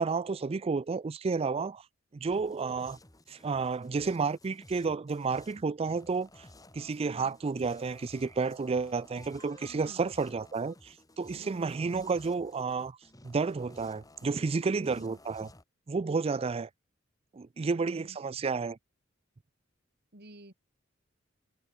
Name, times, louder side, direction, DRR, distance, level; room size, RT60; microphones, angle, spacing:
voice 1, 0.0-1.8 2.1-3.0 3.3-6.5 6.7-13.0 13.2-15.5 15.9-16.7 17.3-18.8, right 4 dB, 30° right, 0.4 m, -31 dB
sound 1, 2.3-15.6, left 1 dB, 20° left, 3.3 m, -55 dB
voice 2, 7.0-7.4 9.7-10.1 11.2-11.7 14.7-15.2 17.6-18.2 20.1-20.5, right 1 dB, 55° right, 5.0 m, -52 dB
head